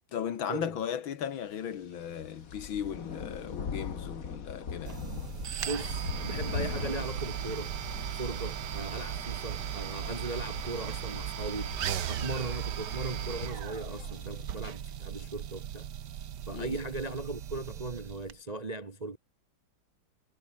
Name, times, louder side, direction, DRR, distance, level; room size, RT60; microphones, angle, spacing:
voice 1, 0.1-5.0 16.5-16.8, left 9 dB, 70° left, 2.1 m, -36 dB
sound 1, 1.8-14.5, left 6 dB, 45° left, 2.0 m, -42 dB
sound 2, 4.9-18.4, right 10 dB, 55° right, 1.6 m, -37 dB
voice 2, 5.6-7.7 8.2-11.7 12.1-15.9 16.5-19.2, right 2 dB, 30° right, 0.9 m, -38 dB
omnidirectional pair, 2.3 m